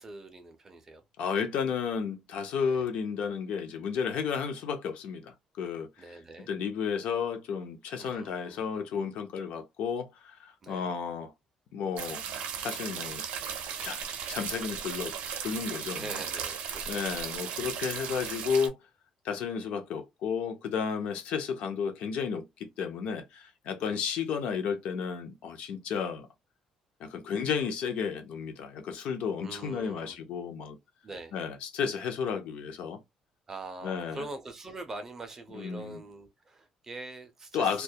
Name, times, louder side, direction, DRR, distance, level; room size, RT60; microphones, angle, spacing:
voice 1, 0.0-1.0 2.6-2.8 6.0-6.5 8.0-8.6 10.6-10.9 15.9-17.0 23.8-24.0 29.4-30.2 31.0-31.3 33.5-37.8, right 2 dB, 20° right, 0.4 m, -43 dB
voice 2, 1.2-5.9 6.5-11.3 11.7-12.2 12.6-13.2 13.8-14.0 14.3-15.1 15.4-16.2 16.9-18.8 19.2-26.3 27.0-30.8 31.3-33.0 33.8-34.2 35.5-36.0 37.5-37.8, left 6 dB, 70° left, 0.5 m, -32 dB
sound 1, 12.0-18.7, right 7 dB, 80° right, 0.5 m, -36 dB
2.2 x 2.1 x 2.6 m
cardioid pair, 175°, 2 cm